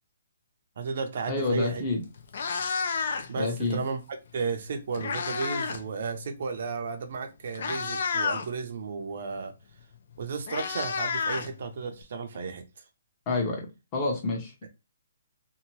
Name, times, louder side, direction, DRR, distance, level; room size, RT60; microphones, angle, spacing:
voice 1, 0.8-1.8 3.3-4.0 4.3-9.5 10.2-12.6, right 4 dB, 55° right, 0.5 m, -33 dB
voice 2, 1.3-2.0 3.4-3.8 13.3-13.7 13.9-14.7, left 3 dB, 25° left, 0.9 m, -28 dB
Meow, 1.7-1.8 2.2-3.5 4.5-5.9 6.1-6.4 7.1-7.2 7.5-8.5 9.8-9.9 10.1-12.0, left 5 dB, 55° left, 0.5 m, -30 dB
2.8 x 2.2 x 2.9 m
hypercardioid pair, 160°, 0 cm